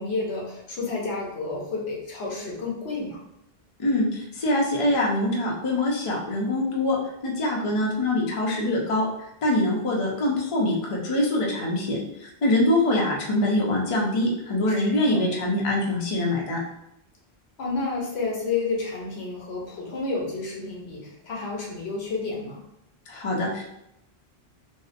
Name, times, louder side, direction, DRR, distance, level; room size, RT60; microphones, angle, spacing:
voice 1, 0.0-3.2 14.8-15.2 17.6-22.6, left 3 dB, 85° left, -2 dB, 1.0 m, -30 dB
voice 2, 3.8-9.1 9.4-16.6 23.1-23.6, left 1 dB, 40° left, -2 dB, 0.5 m, -24 dB
2.7 x 2.0 x 2.4 m, 0.82 s
omnidirectional pair, 1.1 m